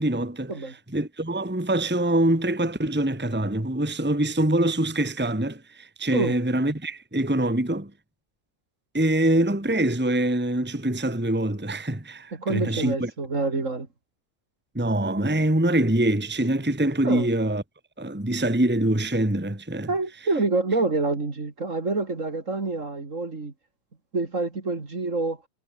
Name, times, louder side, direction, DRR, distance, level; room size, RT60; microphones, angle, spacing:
voice 1, 0.0-0.5 0.9-7.9 8.9-13.1 14.7-17.6 18.0-19.9, right 1 dB, 5° right, 2.1 m, -24 dB
voice 2, 12.3-13.9 17.0-17.3 19.9-23.5 24.1-25.4, right 3 dB, 40° right, 3.1 m, -27 dB
omnidirectional pair, 2.0 m